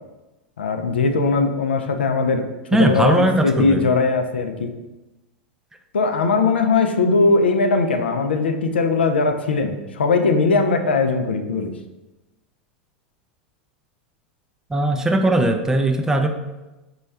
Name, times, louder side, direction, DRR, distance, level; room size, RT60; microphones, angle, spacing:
voice 1, 0.6-4.8 5.9-11.7, left 4 dB, 85° left, 6 dB, 0.4 m, -20 dB
voice 2, 2.7-3.8 14.7-16.3, right 2 dB, 10° right, 5 dB, 0.4 m, -19 dB
4.2 x 2.3 x 3.2 m, 1.1 s
hypercardioid pair, 90°, 6 cm